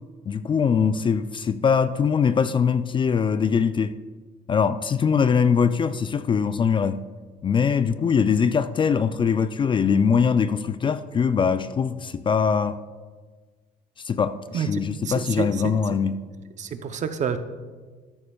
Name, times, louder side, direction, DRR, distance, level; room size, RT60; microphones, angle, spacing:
voice 1, 0.3-3.9 4.5-7.0 7.4-12.8 14.0-16.2, left 6 dB, 30° left, 0.3 m, -22 dB
voice 2, 14.5-15.8 16.6-17.4, right 7 dB, 45° right, 0.7 m, -29 dB
13.5 x 11.0 x 2.3 m
cardioid pair, 110°, 17 cm